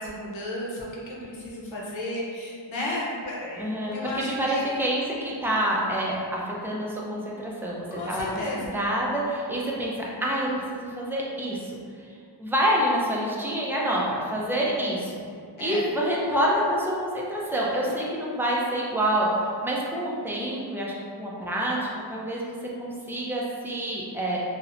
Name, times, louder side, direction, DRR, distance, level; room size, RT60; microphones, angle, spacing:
voice 1, 0.0-3.6 3.9-4.8 8.0-8.7 15.6-15.8, left 1 dB, 80° left, -5 dB, 0.7 m, -33 dB
voice 2, 3.6-11.7 12.4-15.2 15.6-19.3 19.6-22.5 22.8-24.4, equal, 5° right, -4 dB, 0.4 m, -27 dB
2.8 x 2.1 x 2.5 m, 2.2 s
wide cardioid pair, 75°, 46 cm